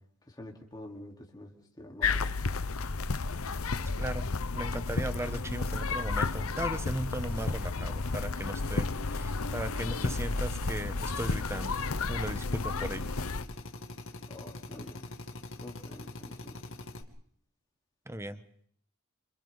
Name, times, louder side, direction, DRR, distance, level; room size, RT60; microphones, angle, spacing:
voice 1, 0.2-2.3 14.3-15.1 15.6-16.6, left 1 dB, 20° left, 0 dB, 3.9 m, -47 dB
sound 1, 2.0-13.4, left 3 dB, 85° left, 0.9 m, -32 dB
voice 2, 4.5-11.8 12.1-13.1 18.1-18.6, right 1 dB, 15° right, 11 dB, 1.2 m, -37 dB
Drill, 11.0-17.0, left 2 dB, 65° left, 2.4 m, -44 dB
28.0 x 27.0 x 4.1 m, 0.63 s
head